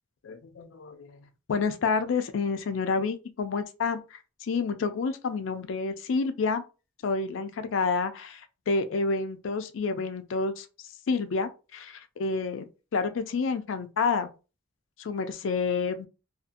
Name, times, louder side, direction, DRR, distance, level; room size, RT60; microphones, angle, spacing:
voice 1, 0.2-1.2 1.5-6.6 7.0-10.7 11.1-14.3 15.0-16.1, left 4 dB, 80° left, 0.4 m, -29 dB
2.6 x 2.4 x 2.5 m
head